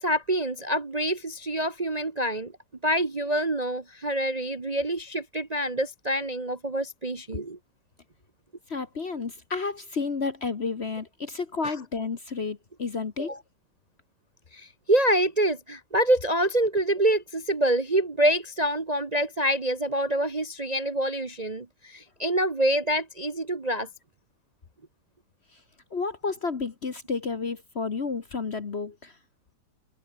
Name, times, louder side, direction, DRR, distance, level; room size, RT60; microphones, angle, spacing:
voice 1, 0.0-2.5 2.8-7.6 11.6-11.8 13.2-13.4 14.5-23.9, right 1 dB, 25° right, 1.0 m, -26 dB
voice 2, 8.7-13.3 25.9-29.1, left 4 dB, 40° left, 1.3 m, -31 dB
omnidirectional pair, 2.1 m